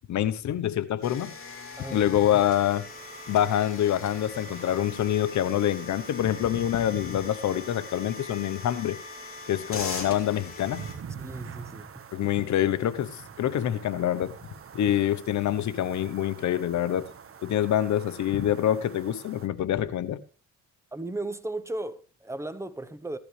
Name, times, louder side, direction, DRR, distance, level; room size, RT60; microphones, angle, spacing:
voice 1, 0.1-1.3 1.9-2.9 3.3-9.0 9.5-10.8 12.1-14.3 14.7-17.1 17.4-20.2, left 11 dB, 70° left, 1.0 m, -26 dB
sound 1, 1.0-10.9, left 4 dB, 45° left, 3.2 m, -40 dB
sound 2, 2.9-19.5, right 7 dB, 45° right, 1.4 m, -47 dB
voice 2, 11.2-11.9 20.9-23.2, right 2 dB, 10° right, 1.0 m, -35 dB
15.5 x 12.0 x 3.3 m
cardioid pair, 90°, 30 cm